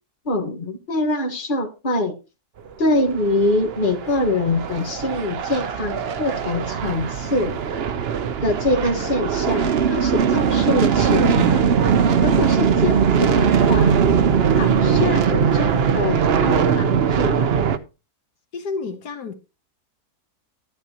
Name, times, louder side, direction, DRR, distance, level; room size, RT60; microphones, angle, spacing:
voice 1, 0.3-2.1 2.8-7.6 8.4-11.6 12.2-14.0 14.5-17.6, left 2 dB, 35° left, 1.8 m, -24 dB
sound 1, 3.0-17.8, right 7 dB, 50° right, 0.8 m, -20 dB
voice 2, 18.5-19.3, left 4 dB, 85° left, 1.8 m, -31 dB
12.5 x 11.0 x 2.9 m
omnidirectional pair, 1.7 m